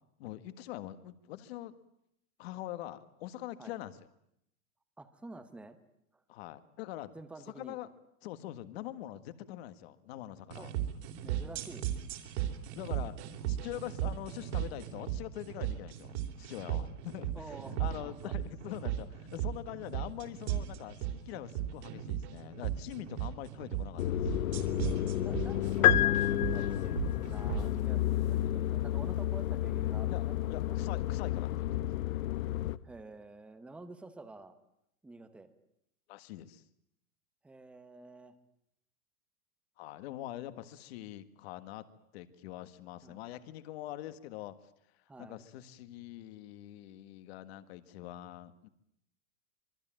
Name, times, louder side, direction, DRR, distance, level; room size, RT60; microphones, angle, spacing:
voice 1, 0.2-1.8 2.4-4.0 6.3-7.1 7.5-7.9 8.2-10.7 12.8-13.1 13.5-24.3 30.1-31.9 36.1-36.6 39.8-41.9 42.1-44.5 45.2-48.7, left 14 dB, 45° left, 12 dB, 1.7 m, -44 dB
voice 2, 5.0-5.8 6.1-6.2 7.1-7.8 10.6-10.7 11.2-11.9 13.4-13.5 17.3-18.3 23.4-23.5 24.8-30.1 30.4-30.6 32.8-34.6 35.0-35.5 37.4-38.3 43.0-43.3 45.1-45.4, right 2 dB, 5° right, 10 dB, 1.0 m, -49 dB
sound 1, 10.5-27.7, right 12 dB, 50° right, 3.6 m, -36 dB
sound 2, 24.0-32.8, left 13 dB, 65° left, 1.2 m, -32 dB
sound 3, 25.8-27.1, left 13 dB, 85° left, 1.0 m, -26 dB
25.5 x 23.5 x 8.9 m, 0.78 s
supercardioid pair, 170°, 43 cm